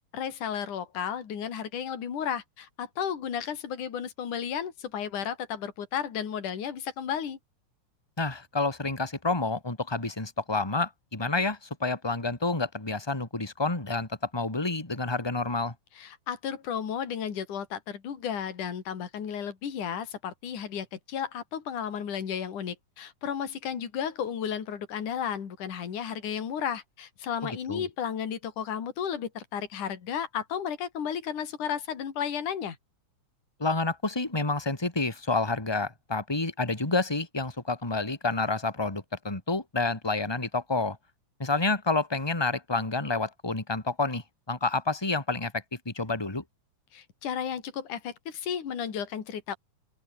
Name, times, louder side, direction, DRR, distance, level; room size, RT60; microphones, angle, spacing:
voice 1, 0.1-7.4 16.0-32.8 46.9-49.6, left 8 dB, 70° left, 4.4 m, -33 dB
voice 2, 8.2-15.7 27.4-27.9 33.6-41.0 41.4-45.5 45.8-46.4, left 3 dB, 5° left, 3.2 m, -29 dB
open air
omnidirectional pair, 3.8 m